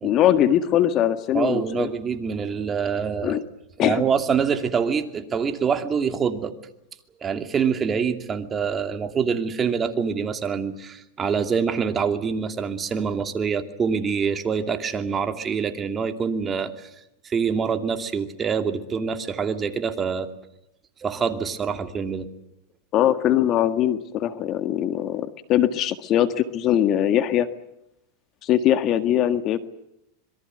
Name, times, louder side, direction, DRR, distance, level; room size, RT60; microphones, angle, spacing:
voice 1, 0.0-1.9 3.2-3.4 3.8-4.0 22.9-27.5 28.4-29.6, left 11 dB, 40° left, 11 dB, 1.7 m, -21 dB
voice 2, 1.3-3.4 3.8-6.5 7.2-16.9 17.2-20.3 21.0-22.3, right 6 dB, 25° right, 8 dB, 2.6 m, -25 dB
26.0 x 22.5 x 7.9 m, 0.85 s
supercardioid pair, 125°, 0 cm